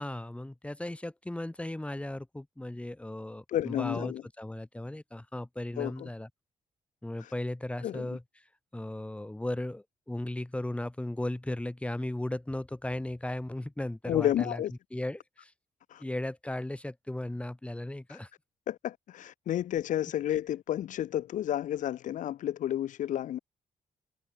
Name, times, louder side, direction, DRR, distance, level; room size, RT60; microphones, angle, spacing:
voice 1, 0.0-6.3 7.0-8.2 8.7-14.6 14.9-15.5 16.0-18.3, left 1 dB, 10° left, 3.2 m, -36 dB
voice 2, 3.5-4.2 5.8-6.1 7.2-7.3 7.8-8.1 14.1-14.7 15.9-16.0 18.1-18.2 18.7-23.4, left 12 dB, 80° left, 1.6 m, -31 dB
cardioid pair, 85°, 13 cm